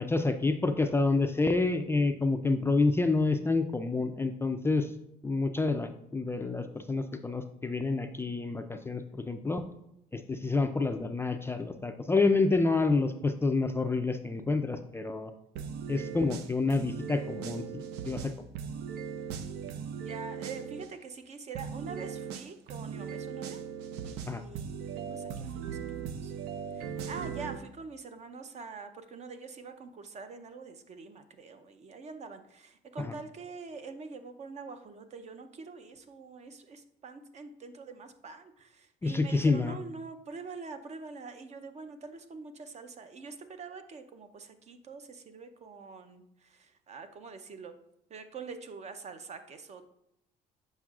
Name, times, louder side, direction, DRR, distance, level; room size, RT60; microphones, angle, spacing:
voice 1, 0.0-4.9 5.2-9.6 10.1-15.3 15.9-18.3 24.3-24.4 33.0-33.1 39.0-39.8, left 3 dB, 15° left, 6 dB, 0.3 m, -28 dB
sound 1, 15.6-20.9 21.6-27.6, right 7 dB, 85° right, 0.5 m, -38 dB
voice 2, 20.0-23.6 24.0-26.3 26.7-47.8 48.1-49.8, right 4 dB, 40° right, 9 dB, 0.6 m, -45 dB
7.4 x 5.3 x 2.4 m, 0.80 s
cardioid pair, 110°, 17 cm